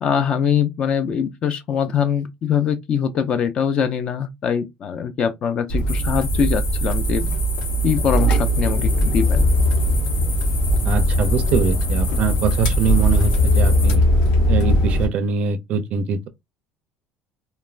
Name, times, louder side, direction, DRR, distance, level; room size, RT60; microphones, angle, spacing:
voice 1, 0.0-7.3 7.8-9.5, left 7 dB, 30° left, 0.3 m, -22 dB
sound 1, 5.7-15.1, equal, 90° left, 0.9 m, -19 dB
sound 2, 5.9-14.0, left 3 dB, 65° left, 1.3 m, -30 dB
voice 2, 10.9-14.0 14.5-16.3, right 5 dB, 40° right, 0.4 m, -23 dB
3.2 x 2.1 x 2.4 m
cardioid pair, 180°, 3 cm